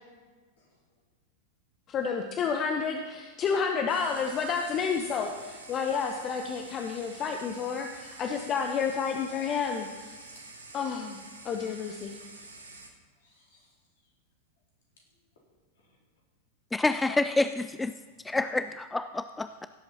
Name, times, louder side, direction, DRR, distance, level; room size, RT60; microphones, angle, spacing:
voice 1, 1.9-10.2 10.7-11.2 11.4-12.2, left 6 dB, 30° left, 4 dB, 0.8 m, -30 dB
sound 1, 3.9-12.9, right 3 dB, 80° right, 1.4 m, -48 dB
voice 2, 12.1-12.7 13.2-14.1 15.7-16.0 18.1-18.4, left 2 dB, 60° left, -3 dB, 4.0 m, -66 dB
voice 3, 16.7-17.9 18.2-19.7, left 2 dB, 10° left, 11 dB, 0.3 m, -28 dB
16.5 x 7.9 x 4.2 m, 1.4 s
figure-of-eight pair, 90°, 0 cm